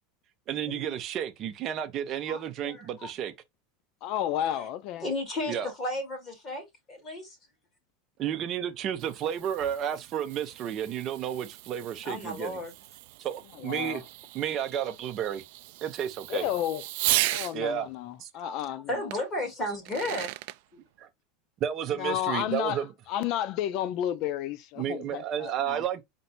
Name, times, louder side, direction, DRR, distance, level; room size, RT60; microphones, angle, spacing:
voice 1, 0.5-3.3 5.5-5.7 8.2-12.6 13.2-14.0 14.3-15.4 15.8-16.4 17.5-17.9 18.2-18.3 21.6-22.9 24.8-26.0, right 9 dB, 35° right, 0.8 m, -31 dB
voice 2, 2.3-3.1 4.4-4.7 5.0-7.4 12.0-12.7 18.4-20.3 20.7-20.8, left 1 dB, 25° left, 2.3 m, -34 dB
voice 3, 4.0-5.1 13.5-14.0 16.3-16.8 17.3-19.0 21.9-25.8, left 12 dB, 45° left, 0.5 m, -32 dB
Fireworks, 8.7-17.6 19.1-19.2 19.7-20.6, right 19 dB, 65° right, 0.3 m, -35 dB
4.5 x 2.6 x 4.2 m
supercardioid pair, 160°, 0 cm